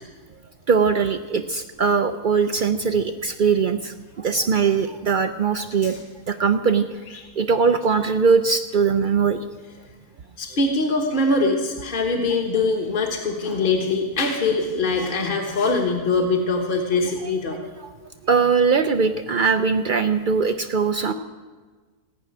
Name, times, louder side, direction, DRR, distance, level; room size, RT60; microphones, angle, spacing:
voice 1, 0.7-6.0 6.3-6.9 7.4-9.4 17.2-17.3 17.8-17.9 18.3-21.1, right 5 dB, 85° right, 8 dB, 0.4 m, -21 dB
voice 2, 10.4-17.6, left 3 dB, 35° left, 0 dB, 1.4 m, -23 dB
17.5 x 6.2 x 9.2 m, 1.4 s
omnidirectional pair, 1.6 m